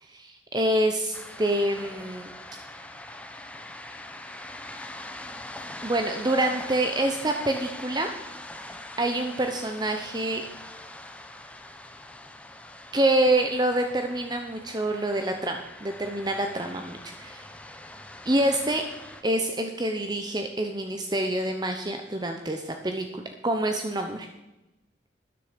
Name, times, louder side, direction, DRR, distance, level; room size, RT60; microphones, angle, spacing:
voice 1, 0.0-2.3 5.8-8.1 8.7-10.4 12.9-17.4 18.2-18.8 19.2-24.3, right 1 dB, 25° right, 5 dB, 0.8 m, -27 dB
sound 1, 1.1-19.2, left 1 dB, 5° left, 0.9 m, -43 dB
13.5 x 10.5 x 5.1 m, 1.0 s
head